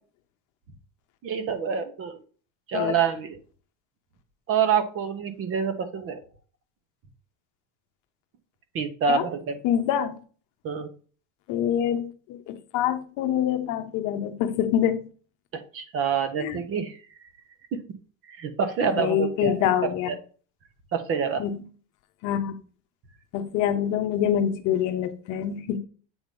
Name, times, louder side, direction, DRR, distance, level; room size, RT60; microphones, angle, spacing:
voice 1, 1.2-2.2 2.7-3.4 4.5-6.2 8.7-9.6 10.6-10.9 15.5-17.0 17.7-17.8 18.3-19.7 20.1-20.2 20.9-21.4, right 6 dB, 35° right, 1.0 m, -27 dB
voice 2, 9.6-10.2 11.5-15.1 16.4-16.6 18.8-20.1 21.4-21.6 22.2-22.6 23.3-25.8, left 10 dB, 50° left, 0.9 m, -25 dB
8.0 x 2.9 x 5.2 m
cardioid pair, 150°, 40 cm